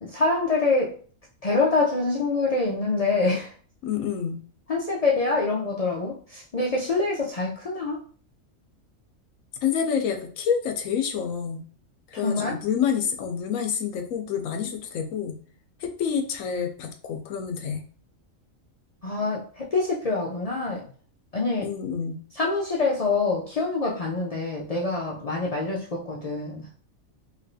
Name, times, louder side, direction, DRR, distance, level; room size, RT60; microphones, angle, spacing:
voice 1, 0.0-0.9 1.4-3.5 4.7-8.0 12.1-12.6 19.0-20.9 21.3-21.7 22.3-26.7, left 3 dB, 60° left, -3 dB, 0.4 m, -25 dB
voice 2, 3.8-4.4 9.6-11.6 12.1-15.4 15.8-17.9 21.6-22.2, left 7 dB, 85° left, 5 dB, 1.0 m, -28 dB
3.1 x 2.8 x 2.6 m, 0.42 s
omnidirectional pair, 1.4 m